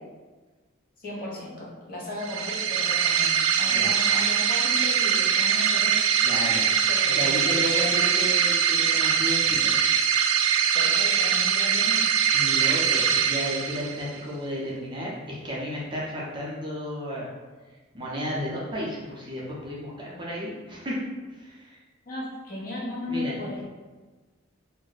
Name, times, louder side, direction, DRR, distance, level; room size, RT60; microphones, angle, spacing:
voice 1, 1.0-8.3 10.7-12.0 22.1-23.6, left 1 dB, 45° left, -5 dB, 0.8 m, -36 dB
sound 1, 2.2-14.1, right 8 dB, 80° right, 0.3 m, -22 dB
voice 2, 3.7-4.0 6.2-6.7 7.1-9.8 12.3-17.3 17.9-21.0 21.3-21.8 23.1-23.4, equal, 25° right, -5 dB, 0.5 m, -33 dB
2.5 x 2.1 x 3.8 m, 1.3 s
head